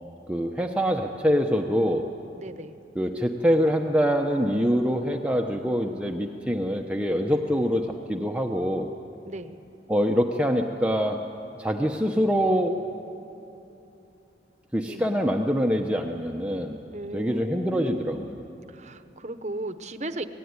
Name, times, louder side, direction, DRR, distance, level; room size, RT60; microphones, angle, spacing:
voice 1, 0.3-2.1 2.9-8.9 9.9-11.3 11.6-12.8 14.7-16.8 17.1-18.4, equal, 5° right, 1 dB, 0.9 m, -24 dB
voice 2, 2.3-2.8 9.3-9.6 14.8-15.1 16.9-18.3 18.7-20.3, right 1 dB, 40° right, 10 dB, 1.0 m, -36 dB
26.5 x 18.5 x 9.7 m, 2.9 s
head